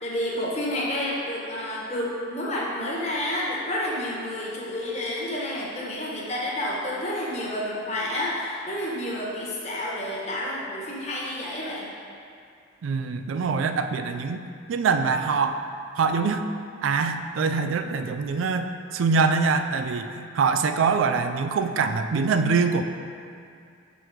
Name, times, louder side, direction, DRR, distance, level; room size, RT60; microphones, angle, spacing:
voice 1, 0.0-11.9, left 1 dB, 35° left, -5 dB, 1.2 m, -30 dB
voice 2, 12.8-14.4 14.7-15.6 16.0-16.5 16.8-22.8, right 5 dB, 80° right, 8 dB, 0.3 m, -24 dB
6.1 x 4.6 x 4.9 m, 2.4 s
head